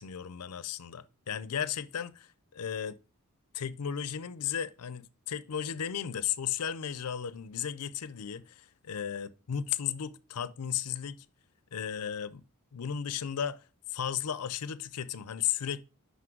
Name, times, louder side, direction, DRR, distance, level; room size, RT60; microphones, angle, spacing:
voice 1, 0.0-3.0 3.5-11.3 11.7-12.4 12.7-13.6 13.9-15.8, left 8 dB, 90° left, 0.5 m, -35 dB
6.0 x 5.6 x 4.5 m
head